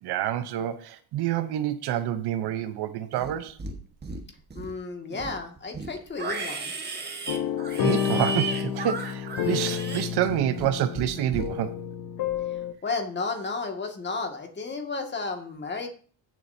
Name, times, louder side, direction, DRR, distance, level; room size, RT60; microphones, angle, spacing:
voice 1, 0.0-3.6 7.8-11.8, right 11 dB, 70° right, 0.9 m, -28 dB
Livestock farm animals working animals, 3.1-3.8 4.0-4.7 5.1-10.7 11.0-11.5, right 4 dB, 25° right, 1.5 m, -35 dB
voice 2, 4.5-6.7 12.8-15.9, left 4 dB, 25° left, 2.1 m, -32 dB
sound 1, 7.3-12.7, left 9 dB, 60° left, 1.0 m, -30 dB
16.5 x 7.6 x 2.8 m
cardioid pair, 125°, 40 cm